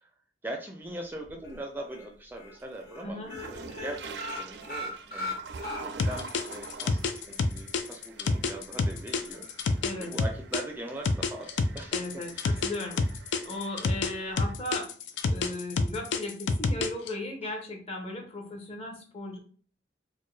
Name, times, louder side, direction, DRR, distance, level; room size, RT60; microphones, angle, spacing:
voice 1, 0.4-5.4 5.8-9.5 10.0-12.1 12.4-12.7, right 1 dB, 10° right, 2 dB, 0.4 m, -41 dB
Toilet Flushing, 0.8-1.8 2.2-14.5, right 4 dB, 75° right, 0.4 m, -46 dB
sound 1, 1.4-2.0 2.4-2.5 2.8-3.0 3.3-6.3 6.6-6.7 7.1-7.2, left 1 dB, 60° left, 1.4 m, -37 dB
voice 2, 3.0-3.4 9.8-10.1 11.9-13.0 13.4-14.9 15.3-19.4, left 1 dB, 35° left, 2 dB, 0.8 m, -36 dB
sound 2, 6.0-10.6 11.1-14.1 14.4-17.1, left 3 dB, 80° left, 0.4 m, -27 dB
4.3 x 2.2 x 3.2 m, 0.43 s
head